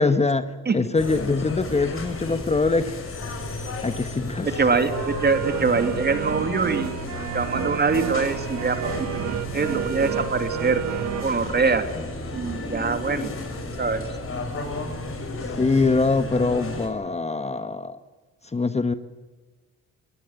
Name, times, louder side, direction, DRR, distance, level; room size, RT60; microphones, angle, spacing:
voice 1, 0.0-3.0 3.8-4.6 12.0-12.1 15.4-18.0 18.4-18.9, left 3 dB, 20° left, 11 dB, 1.2 m, -23 dB
sound 1, 1.0-16.9, left 2 dB, 45° left, 6.7 m, -33 dB
voice 2, 4.4-7.0 7.3-10.8 11.2-11.8 12.3-13.3 13.8-14.0, right 4 dB, 35° right, 8 dB, 2.8 m, -24 dB
sound 2, 4.9-11.3, right 9 dB, 70° right, 1.2 m, -30 dB
22.5 x 17.5 x 8.9 m, 1.3 s
cardioid pair, 90°, 30 cm